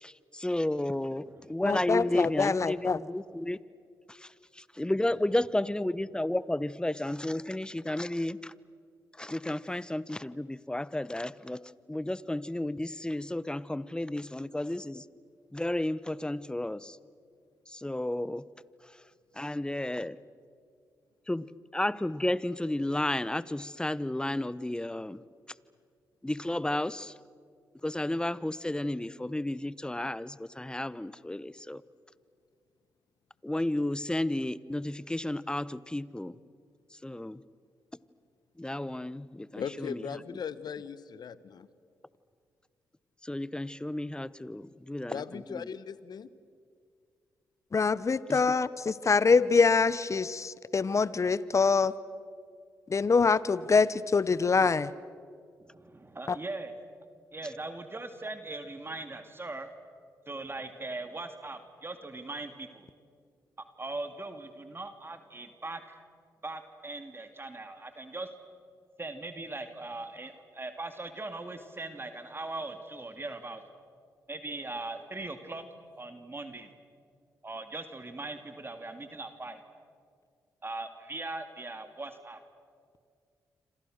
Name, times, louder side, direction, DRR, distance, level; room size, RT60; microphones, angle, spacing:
voice 1, 0.0-3.6 4.1-8.5 9.2-15.0 15.5-17.0 17.7-18.4 19.4-20.2 21.3-21.5 21.7-25.2 26.2-27.1 27.8-31.8 33.4-36.4 37.0-37.4 38.6-40.0 43.2-45.7 48.3-48.6, left 1 dB, 10° left, 18 dB, 1.0 m, -32 dB
voice 2, 1.6-3.0 47.7-51.9 52.9-54.9 56.3-56.4, left 4 dB, 40° left, 18 dB, 0.9 m, -25 dB
voice 3, 39.5-41.7 45.1-46.3, left 7 dB, 65° left, 16 dB, 1.2 m, -38 dB
voice 4, 55.6-56.7 57.3-59.7 60.3-62.9 63.8-66.0 66.4-68.3 69.0-73.6 74.3-75.6 76.0-76.7 77.4-79.6 80.6-82.4, right 2 dB, 30° right, 7 dB, 2.5 m, -40 dB
28.0 x 26.5 x 6.6 m, 2.2 s
supercardioid pair, 45°, 8 cm